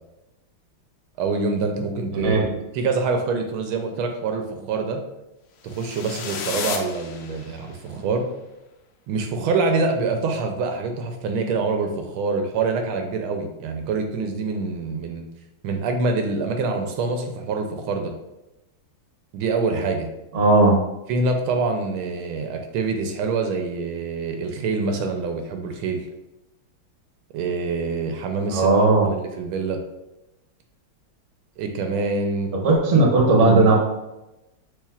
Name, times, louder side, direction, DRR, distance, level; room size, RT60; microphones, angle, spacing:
voice 1, 1.2-2.4 2.7-5.0 5.6-8.3 9.1-15.3 15.6-18.1 19.3-20.1 21.1-26.1 27.3-29.8 31.6-32.5 32.9-33.0, right 4 dB, 80° right, 4 dB, 1.4 m, -25 dB
voice 2, 2.2-2.5 20.3-20.8 28.5-29.1 32.6-33.7, right 3 dB, 45° right, -1 dB, 1.0 m, -16 dB
sound 1, 5.6-7.8, left 6 dB, 90° left, 1.5 m, -33 dB
6.2 x 3.1 x 2.4 m, 0.97 s
omnidirectional pair, 2.3 m